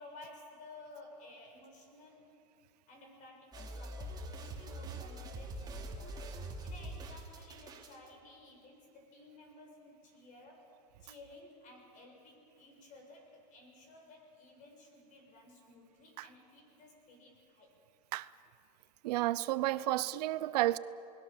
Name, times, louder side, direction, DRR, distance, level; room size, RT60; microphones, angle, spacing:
voice 1, 0.0-2.3 2.9-10.7 11.0-17.7, left 2 dB, 35° left, 2 dB, 6.5 m, -55 dB
sound 1, 3.5-8.0, right 1 dB, 20° right, 3.0 m, -44 dB
voice 2, 19.0-20.8, right 16 dB, 70° right, 17 dB, 0.7 m, -31 dB
28.5 x 20.0 x 7.2 m, 2.7 s
supercardioid pair, 130°, 21 cm